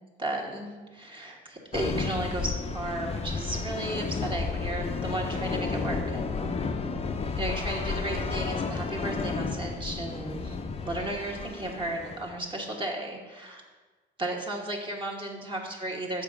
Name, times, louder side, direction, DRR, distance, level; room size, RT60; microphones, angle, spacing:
voice 1, 0.2-6.5 7.3-10.6 10.8-13.6 14.2-16.2, right 1 dB, 25° right, -1 dB, 1.2 m, -34 dB
sound 1, 1.7-12.4, left 4 dB, 30° left, 0.6 m, -32 dB
7.1 x 5.2 x 4.9 m, 1.3 s
cardioid pair, 90°, 20 cm